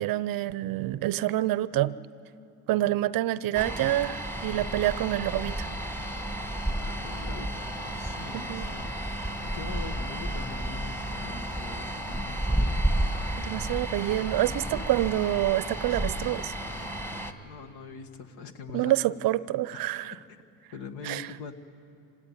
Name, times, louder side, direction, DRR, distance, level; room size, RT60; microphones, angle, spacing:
voice 1, 0.0-2.0 2.7-5.7 8.3-8.7 13.4-16.5 18.7-20.1 21.0-21.3, right 15 dB, 55° right, 18 dB, 0.6 m, -27 dB
sound 1, 3.5-17.3, right 1 dB, 5° left, 1.6 m, -32 dB
voice 2, 6.8-9.3 9.5-12.8 14.5-14.9 15.9-16.0 17.4-19.0 19.7-19.8 20.1-20.4 20.7-21.5, left 5 dB, 65° left, 6 dB, 1.8 m, -43 dB
26.0 x 17.0 x 9.5 m, 2.7 s
supercardioid pair, 90°, 43 cm